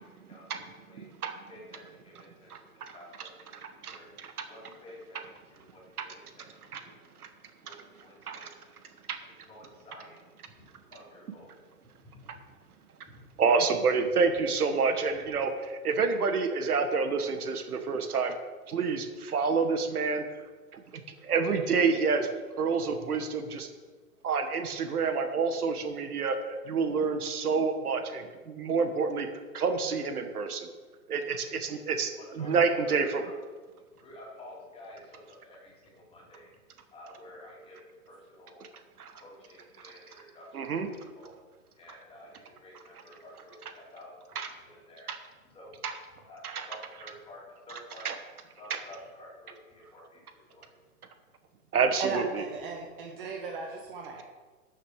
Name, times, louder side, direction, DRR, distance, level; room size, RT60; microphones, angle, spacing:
voice 1, 0.9-1.3 1.7-1.8 2.5-4.3 5.1-5.3 6.0-6.1 6.7-6.8 7.2-7.3 7.7-7.8 8.2-8.5 9.1-9.2 13.4-18.4 18.7-20.2 20.7-22.3 22.6-23.7 24.2-29.3 29.5-30.7 31.1-33.2 39.0-39.2 39.8-40.1 40.5-40.9 43.6-43.7 44.3-44.5 45.1-45.2 45.8-46.0 46.4-47.1 47.7-48.2 48.7-48.8 51.7-52.4, right 5 dB, 75° right, 7 dB, 1.5 m, -29 dB
voice 2, 1.5-2.1 2.4-2.5 2.9-3.3 3.9-4.1 4.5-5.2 5.7-5.8 6.4-6.5 6.8-6.9 7.6-7.8 8.0-8.8 9.5-10.2 10.9-11.5 32.2-32.5 32.8-32.9 33.2-33.4 34.0-36.5 36.9-37.8 38.1-38.6 39.2-40.5 41.2-41.3 41.8-44.1 44.6-45.1 45.5-45.7 46.3-48.1 48.6-50.0 50.5-50.6, left 1 dB, 15° left, -3 dB, 2.7 m, -50 dB
voice 3, 52.0-54.2, right 4 dB, 35° right, 2 dB, 1.2 m, -36 dB
12.5 x 6.7 x 4.9 m, 1.4 s
hypercardioid pair, 140°, 45 cm